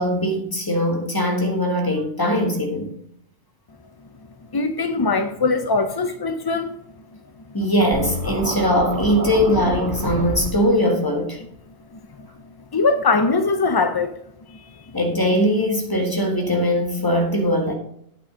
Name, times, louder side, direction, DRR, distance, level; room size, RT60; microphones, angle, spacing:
voice 1, 0.0-2.9 7.5-11.4 14.9-17.7, equal, 20° left, 1.6 m, -21 dB
voice 2, 4.5-6.7 12.7-14.1 14.5-14.6, left 3 dB, 40° left, 0.3 m, -21 dB
Scratching (performance technique), 7.9-10.5, right 1 dB, 55° right, 3.2 m, -27 dB
8.7 x 6.0 x 6.1 m
omnidirectional pair, 1.1 m